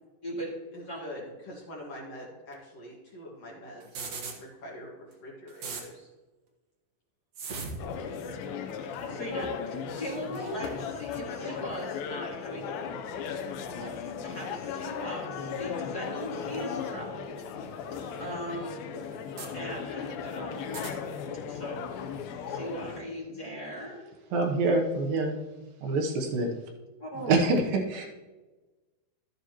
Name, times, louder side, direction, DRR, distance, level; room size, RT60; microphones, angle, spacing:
voice 1, 0.7-6.1 11.4-11.7, equal, 50° left, -4 dB, 2.4 m, -44 dB
sound 1, 3.8-4.4 5.1-5.2 5.5-5.9 7.4-7.9 8.7-8.9 10.3-10.5 11.8-12.0 13.2-13.4 14.7-14.8 16.2-16.3 17.6-17.7 18.1-18.2 19.1-19.5 20.6-20.9, right 4 dB, 55° right, 2.0 m, -39 dB
sound 2, 7.8-23.0, left 6 dB, 75° left, 2.6 m, -36 dB
voice 2, 9.0-12.6 13.7-13.9 14.2-17.3 18.2-18.8 19.5-20.8 21.5-21.8 22.4-24.1 27.0-27.4, equal, 30° left, -6 dB, 2.2 m, -39 dB
voice 3, 24.3-25.3 25.6-26.5 27.3-28.1, right 3 dB, 75° right, 2 dB, 2.7 m, -26 dB
12.5 x 9.5 x 3.0 m, 1.2 s
omnidirectional pair, 4.4 m